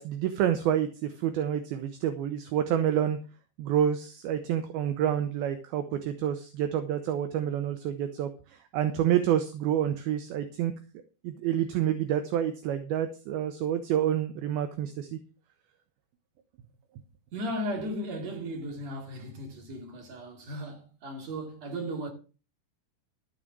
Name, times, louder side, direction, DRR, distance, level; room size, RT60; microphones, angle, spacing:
voice 1, 0.0-3.2 3.6-10.7 11.2-15.2, right 10 dB, 75° right, 2.5 m, -28 dB
voice 2, 17.3-22.1, equal, 45° right, 3.4 m, -36 dB
14.0 x 4.9 x 7.5 m
omnidirectional pair, 4.9 m